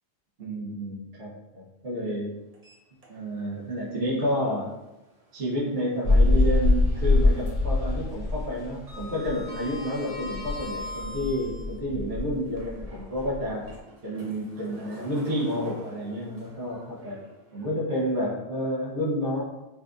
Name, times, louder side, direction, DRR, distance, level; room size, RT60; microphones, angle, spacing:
voice 1, 0.4-2.3 3.1-4.7 5.3-13.6 14.0-17.2 17.5-19.4, equal, 85° right, -6 dB, 1.4 m, -30 dB
Sliding door, 2.5-3.5 3.9-4.0 5.7-6.8 7.0-7.4 7.7-11.8 12.4-17.6, left 1 dB, 40° right, 0.7 m, -43 dB
sound 1, 6.0-9.9 10.2-13.6, left 2 dB, 85° left, 1.1 m, -24 dB
5.5 x 2.4 x 2.5 m, 1.0 s
omnidirectional pair, 1.1 m